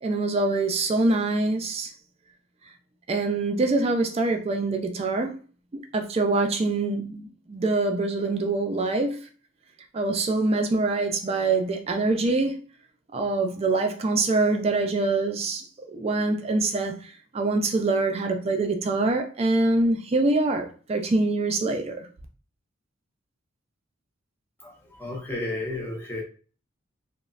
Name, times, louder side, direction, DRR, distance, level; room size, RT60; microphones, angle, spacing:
voice 1, 0.0-1.9 3.1-5.3 5.7-9.2 9.9-12.6 13.1-15.6 15.9-16.9 17.3-22.1, right 2 dB, 30° right, 0.3 m, -24 dB
voice 2, 24.6-26.2, left 2 dB, 10° left, 0.6 m, -33 dB
3.0 x 2.0 x 2.4 m
head